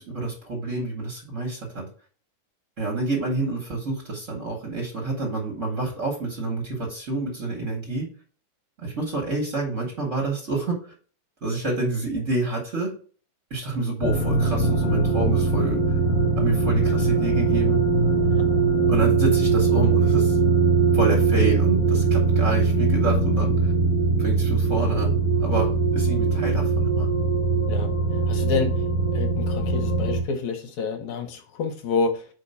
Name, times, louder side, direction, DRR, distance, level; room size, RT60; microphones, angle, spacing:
voice 1, 0.0-1.9 2.8-8.1 8.8-10.8 11.4-12.9 13.5-15.9 16.4-17.8 18.9-20.4 20.9-23.7 24.2-27.1, right 3 dB, 75° right, 0.7 m, -28 dB
sound 1, 14.0-30.2, right 4 dB, 55° left, 1.5 m, -21 dB
voice 2, 28.3-28.7 29.1-32.3, left 5 dB, 70° left, 1.8 m, -28 dB
4.6 x 4.3 x 5.4 m
omnidirectional pair, 3.7 m